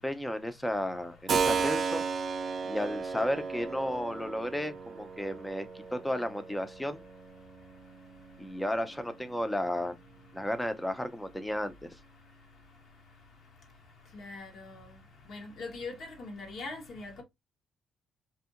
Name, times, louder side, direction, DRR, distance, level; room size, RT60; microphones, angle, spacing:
voice 1, 0.0-2.0 2.6-7.0 8.4-9.9 10.3-11.9, left 1 dB, 5° left, 0.5 m, -33 dB
Keyboard (musical), 1.3-9.9, right 5 dB, 50° right, 0.6 m, -35 dB
voice 2, 14.1-14.7 15.3-17.2, left 3 dB, 65° left, 1.2 m, -41 dB
2.7 x 2.6 x 2.4 m
cardioid pair, 90°, 0 cm